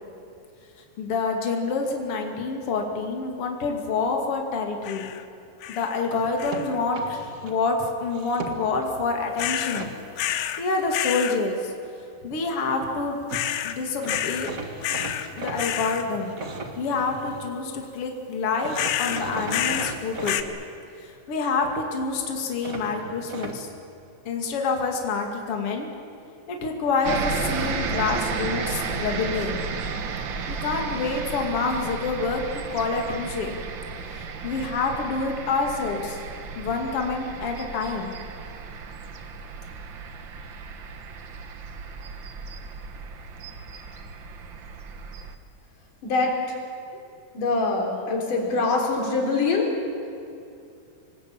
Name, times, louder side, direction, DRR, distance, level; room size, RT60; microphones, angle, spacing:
voice 1, 1.0-5.1 5.7-9.9 10.6-11.7 12.2-13.2 13.6-14.5 15.4-16.4 16.8-20.4 21.0-23.7 24.2-25.9 26.5-29.7 30.5-33.6 34.1-36.2 36.6-38.1, left 4 dB, 45° left, 2 dB, 3.0 m, -27 dB
sound 1, 4.8-5.2 5.6-6.0 6.4-6.8 9.4-9.8 10.2-10.6 10.9-11.4 13.3-13.8 14.1-14.5 14.8-15.3 15.6-16.0 18.7-20.0 20.2-20.4, left 11 dB, 90° left, 2.7 m, -28 dB
sound 2, 6.1-7.5 8.1-8.9 9.4-9.9 13.0-13.1 13.3-13.5 14.0-17.5 18.6-20.4 22.6-23.6, right 3 dB, 40° right, 1.3 m, -37 dB
sound 3, 27.0-45.3, right 5 dB, 60° right, 1.2 m, -34 dB
voice 2, 46.0-46.4 47.3-49.7, left 3 dB, 65° left, 0 dB, 5.2 m, -24 dB
25.5 x 19.5 x 8.8 m, 2.6 s
omnidirectional pair, 4.0 m